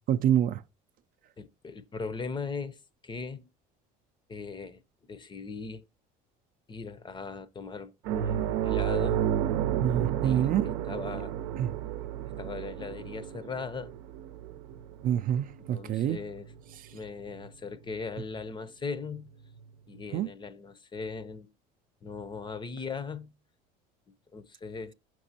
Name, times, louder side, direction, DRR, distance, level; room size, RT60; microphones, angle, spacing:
voice 1, 0.1-0.6 9.8-10.6 11.6-11.7 15.0-16.2 20.1-20.3, right 10 dB, 50° right, 0.5 m, -26 dB
voice 2, 1.4-3.5 4.3-5.8 6.7-9.2 10.2-11.4 12.4-13.9 15.7-16.5 16.9-19.3 19.9-21.5 22.0-23.3 24.3-24.9, left 4 dB, 25° left, 0.6 m, -39 dB
sound 1, 8.1-17.0 17.3-17.5 19.6-19.7, right 10 dB, 85° right, 0.7 m, -32 dB
6.1 x 6.1 x 2.8 m
supercardioid pair, 105°, 19 cm